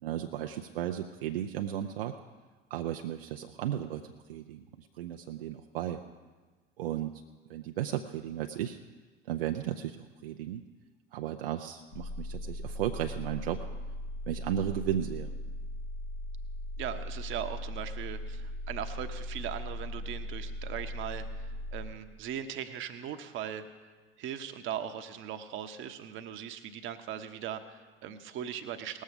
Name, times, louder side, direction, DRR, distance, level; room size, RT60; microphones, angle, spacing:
voice 1, 0.0-2.2 2.7-6.0 6.8-7.1 7.5-8.8 9.3-10.6 11.1-13.6 14.3-15.3, right 11 dB, 65° right, 4 dB, 0.6 m, -35 dB
sound 1, 11.9-21.9, left 1 dB, 55° left, 2.4 m, -38 dB
voice 2, 16.8-21.2 21.7-23.6 24.2-29.0, right 9 dB, 40° right, 8 dB, 1.0 m, -39 dB
19.0 x 7.4 x 5.2 m, 1.3 s
figure-of-eight pair, 65°, 30 cm